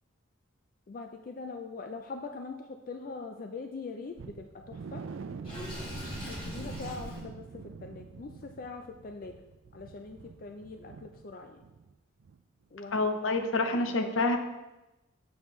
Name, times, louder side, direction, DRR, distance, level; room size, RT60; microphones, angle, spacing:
voice 1, 0.9-5.0 6.3-9.4 9.7-11.6 12.7-13.8 14.0-14.3, left 4 dB, 45° left, 5 dB, 0.4 m, -42 dB
sound 1, 4.2-11.9 12.2-12.4 12.8-12.9, right 5 dB, 75° right, 0.4 m, -45 dB
Water / Sink (filling or washing), 5.4-7.2, equal, 25° left, 2.0 m, -40 dB
voice 2, 12.9-14.4, left 2 dB, 75° left, 6 dB, 0.7 m, -27 dB
7.1 x 7.0 x 3.1 m, 1.0 s
head